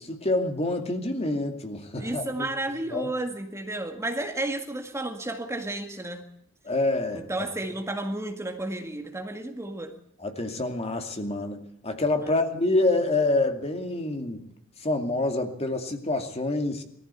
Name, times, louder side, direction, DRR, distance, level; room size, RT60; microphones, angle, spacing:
voice 1, 0.0-2.5 2.9-3.1 6.6-7.5 10.2-14.4 14.8-16.8, left 2 dB, 30° left, 5 dB, 2.5 m, -27 dB
voice 2, 2.0-6.2 7.1-10.0 12.2-12.4, right 2 dB, 15° right, 4 dB, 1.9 m, -32 dB
21.5 x 14.5 x 8.4 m, 0.70 s
head